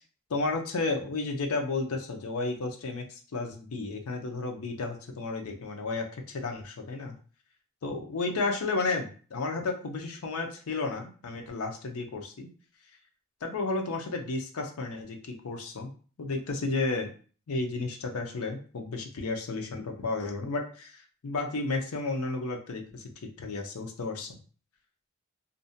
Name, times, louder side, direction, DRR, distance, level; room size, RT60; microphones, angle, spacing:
voice 1, 0.3-7.1 7.8-12.5 13.4-15.9 16.2-17.1 17.5-23.1 23.4-24.4, left 3 dB, 75° left, 4 dB, 0.5 m, -32 dB
2.5 x 2.1 x 2.6 m, 0.41 s
head